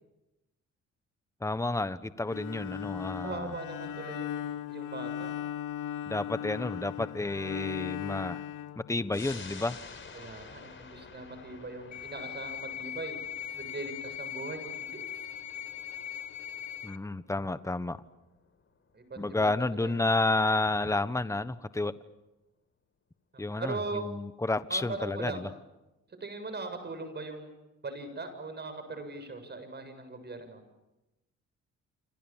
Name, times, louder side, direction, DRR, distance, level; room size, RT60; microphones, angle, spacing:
voice 1, 1.4-3.5 6.1-8.4 8.9-9.8 16.8-18.0 19.2-21.9 23.4-25.5, left 2 dB, 10° left, 13 dB, 1.3 m, -30 dB
Bowed string instrument, 2.2-9.4, left 10 dB, 85° left, 2.5 m, -38 dB
voice 2, 3.2-5.3 10.1-15.1 18.9-20.1 23.3-24.1 24.7-25.5 26.1-27.5 27.8-30.6, right 3 dB, 35° right, 9 dB, 7.5 m, -40 dB
sound 1, 9.1-20.1 20.5-20.6, left 5 dB, 40° left, 4.6 m, -51 dB
sound 2, 11.9-17.0, left 9 dB, 65° left, 1.6 m, -40 dB
29.0 x 26.5 x 7.5 m, 0.99 s
cardioid pair, 90°, 30 cm